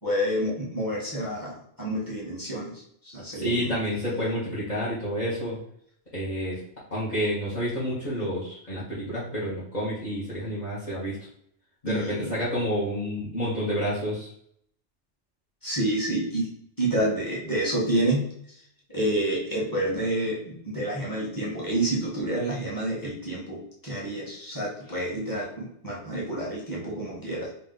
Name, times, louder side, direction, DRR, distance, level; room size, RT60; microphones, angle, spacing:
voice 1, 0.0-3.8 11.9-12.3 15.6-16.5 16.8-18.3 18.9-27.5, right 1 dB, 20° left, -6 dB, 1.4 m, -29 dB
voice 2, 3.3-5.6 6.1-6.6 6.9-11.2 11.8-14.3, equal, 40° left, -8 dB, 1.4 m, -29 dB
3.3 x 2.7 x 4.0 m, 0.69 s
omnidirectional pair, 1.2 m